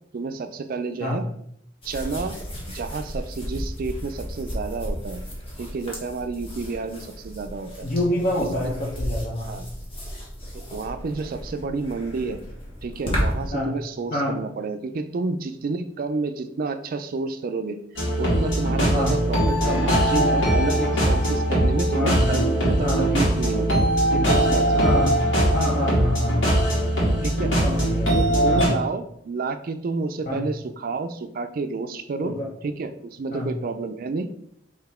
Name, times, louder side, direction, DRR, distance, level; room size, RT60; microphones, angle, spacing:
voice 1, 0.1-1.2 1.8-2.4 2.7-5.2 5.6-7.9 8.6-8.7 9.4-9.7 10.5-12.4 12.8-17.8 18.2-25.0 27.2-27.5 28.1-32.3 32.6-34.3, right 4 dB, 50° right, 10 dB, 0.4 m, -30 dB
sound 1, 1.8-13.5, equal, 30° left, 1.2 m, -33 dB
voice 2, 7.8-9.6 13.5-13.7 14.1-14.4 18.9-19.2 21.9-22.4 22.8-23.0 24.7-25.2 25.5-26.8 27.6-28.2 28.5-28.7 30.3-30.4 32.2-32.5 33.3-33.5, left 1 dB, 45° left, -3 dB, 0.9 m, -27 dB
sound 2, 17.9-28.7, right 1 dB, 80° left, 1.9 m, -21 dB
4.0 x 3.0 x 4.3 m, 0.71 s
head